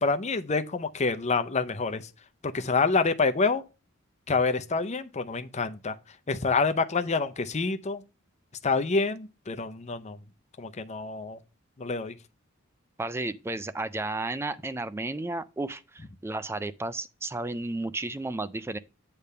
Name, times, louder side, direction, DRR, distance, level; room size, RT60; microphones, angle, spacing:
voice 1, 0.0-2.1 2.5-3.6 4.3-5.9 6.3-8.0 8.6-10.2 10.6-11.4 11.8-12.1, left 4 dB, 35° left, 0.6 m, -27 dB
voice 2, 13.0-18.8, right 2 dB, 10° right, 0.3 m, -33 dB
8.4 x 3.4 x 6.6 m
head